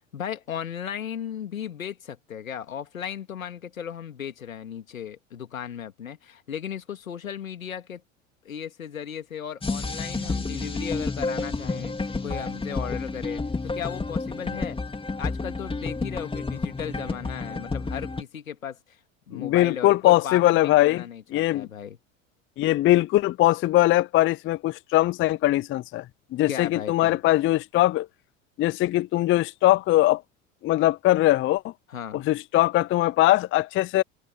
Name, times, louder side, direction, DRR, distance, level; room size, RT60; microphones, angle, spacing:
voice 1, 0.1-8.0 8.4-14.8 15.2-19.0 19.3-22.0 26.5-27.2 31.9-32.3, left 8 dB, 85° left, 2.4 m, -36 dB
sound 1, 9.6-18.2, left 3 dB, 15° left, 2.8 m, -30 dB
voice 2, 19.3-21.0 21.3-21.7 22.6-26.0 26.3-28.1 28.6-30.2 30.6-31.7 32.1-34.0, left 16 dB, 30° left, 0.5 m, -21 dB
hypercardioid pair, 75°, 40 cm